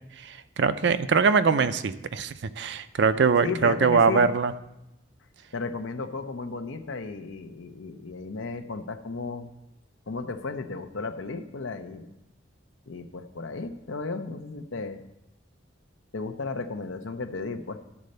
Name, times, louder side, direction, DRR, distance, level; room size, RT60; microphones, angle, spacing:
voice 1, 0.2-4.5, right 5 dB, 60° right, 12 dB, 0.5 m, -22 dB
voice 2, 3.4-4.3 5.5-9.5 10.1-12.1 12.9-15.0 16.1-17.8, left 4 dB, 85° left, 8 dB, 0.7 m, -34 dB
12.0 x 4.2 x 6.6 m, 0.91 s
head